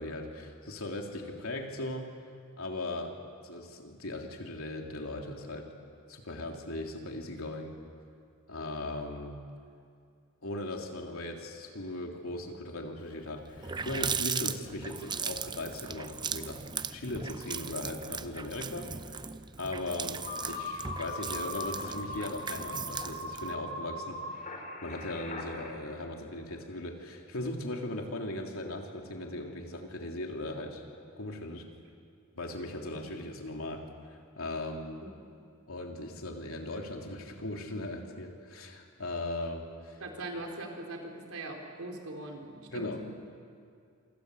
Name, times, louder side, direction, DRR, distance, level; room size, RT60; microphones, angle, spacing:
voice 1, 0.0-2.1 2.6-3.1 3.4-5.7 6.1-7.7 8.5-9.4 10.4-16.6 16.9-19.2 19.6-20.2 20.5-30.8 31.2-31.6 32.3-35.0 35.7-40.0 42.7-43.2, left 1 dB, 75° left, 1 dB, 3.4 m, -38 dB
Water tap faucet, 13.1-13.2 13.4-23.5, right 6 dB, 20° right, 0.6 m, -38 dB
sound 1, 20.2-25.7, left 2 dB, 40° left, 4.2 m, -39 dB
voice 2, 40.0-42.9, right 2 dB, 90° right, 2 dB, 4.6 m, -41 dB
27.5 x 25.0 x 8.2 m, 2.3 s
head